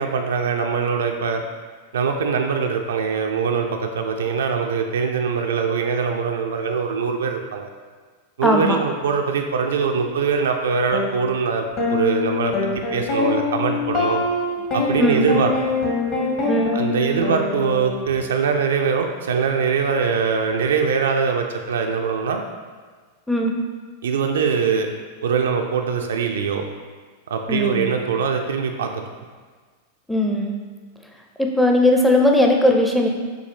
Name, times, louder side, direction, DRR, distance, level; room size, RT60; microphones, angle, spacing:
voice 1, 0.0-1.4 1.9-7.7 8.4-12.5 12.9-14.2 14.7-15.5 16.7-22.4 24.0-24.9 25.2-26.7 27.3-29.0, right 6 dB, 65° right, 4 dB, 0.4 m, -22 dB
voice 2, 8.4-8.8 15.0-15.3 16.4-16.8 23.3-23.5 27.5-27.9 30.1-30.6 31.4-33.1, left 1 dB, ahead, 1 dB, 0.5 m, -18 dB
sound 1, 10.9-11.1 11.8-18.1, left 3 dB, 40° left, 1.1 m, -24 dB
6.4 x 2.6 x 2.9 m, 1.5 s
figure-of-eight pair, 90°, 0 cm